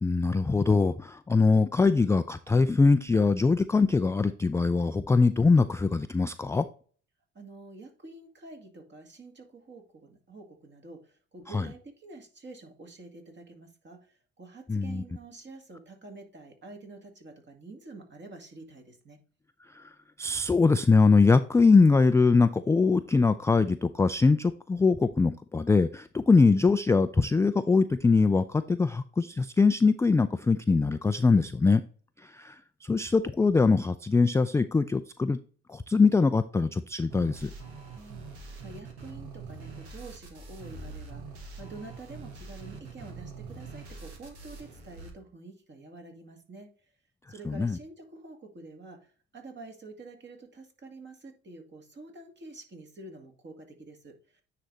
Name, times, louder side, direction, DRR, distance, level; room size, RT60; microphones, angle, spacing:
voice 1, 0.0-6.7 11.5-11.6 14.7-15.0 20.2-31.8 32.3-32.5 32.8-35.4 35.7-37.5 47.5-47.8, left 4 dB, 10° left, 11 dB, 0.3 m, -22 dB
voice 2, 7.3-19.2 37.9-46.7 47.3-54.4, right 2 dB, 35° right, 3 dB, 2.1 m, -48 dB
sound 1, 37.1-45.1, right 4 dB, 85° right, 1.5 m, -44 dB
9.6 x 3.3 x 3.9 m, 0.40 s
hypercardioid pair, 55°, 32 cm